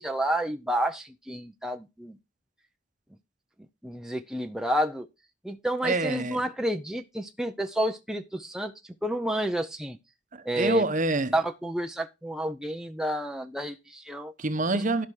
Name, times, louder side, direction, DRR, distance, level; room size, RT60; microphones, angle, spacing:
voice 1, 0.0-2.2 3.8-5.1 5.4-8.7 9.0-10.0 10.5-10.8 11.3-14.3 14.7-14.8, right 1 dB, 5° right, 0.6 m, -30 dB
voice 2, 5.8-6.4 10.3-11.3 14.4-15.1, right 3 dB, 40° right, 1.0 m, -26 dB
13.0 x 5.9 x 4.8 m
head